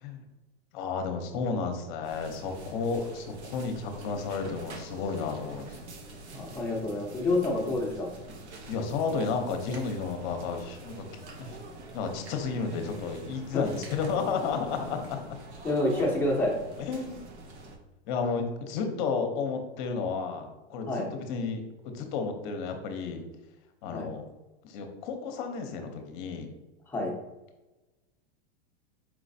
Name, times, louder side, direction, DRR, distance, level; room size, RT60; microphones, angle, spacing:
voice 1, 0.7-5.7 8.7-11.0 11.4-11.6 11.9-15.4 16.8-17.2 18.1-23.2 23.8-24.3 24.6-26.5, left 5 dB, 45° left, 5 dB, 0.7 m, -32 dB
sound 1, 2.0-17.8, right 2 dB, 85° right, 0.8 m, -46 dB
voice 2, 6.3-8.1 13.5-13.6 15.6-16.6 20.9-21.1 23.9-24.1 26.9-27.1, left 2 dB, 5° left, -3 dB, 0.6 m, -28 dB
4.7 x 3.1 x 2.6 m, 1.1 s
supercardioid pair, 140°, 33 cm